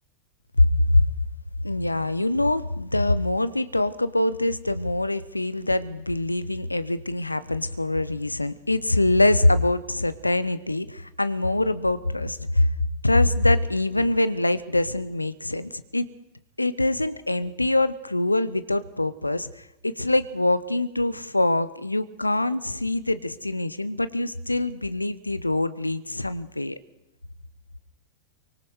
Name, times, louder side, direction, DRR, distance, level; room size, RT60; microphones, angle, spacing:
voice 1, 0.6-1.0 1.6-12.7 13.0-16.1 16.6-26.8, left 2 dB, 85° left, 0.9 m, -24 dB
24.0 x 23.5 x 4.9 m
figure-of-eight pair, 90°, 0 cm